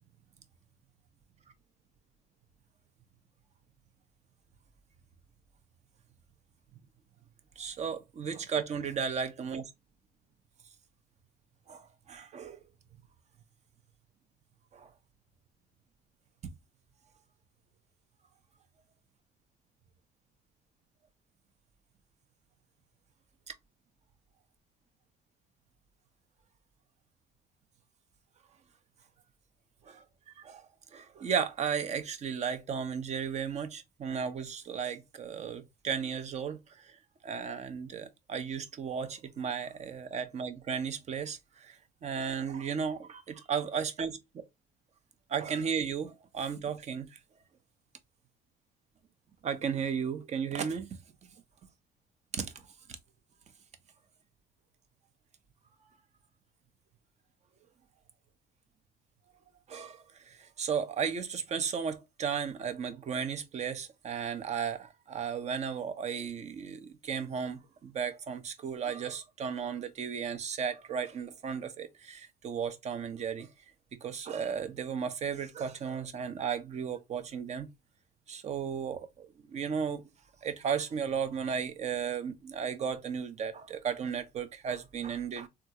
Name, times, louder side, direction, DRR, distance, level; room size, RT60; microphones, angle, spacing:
voice 1, 7.6-9.7 11.7-12.6 14.7-14.9 16.4-16.5 23.5-23.6 29.8-30.0 30.4-30.6 30.9-37.0 37.2-44.4 45.3-47.2 49.4-50.9 52.3-52.5 59.7-73.5 74.0-77.7 78.3-80.1 80.4-85.5, right 7 dB, 40° right, 0.7 m, -35 dB
3.5 x 2.4 x 2.8 m
cardioid pair, 110°, 17 cm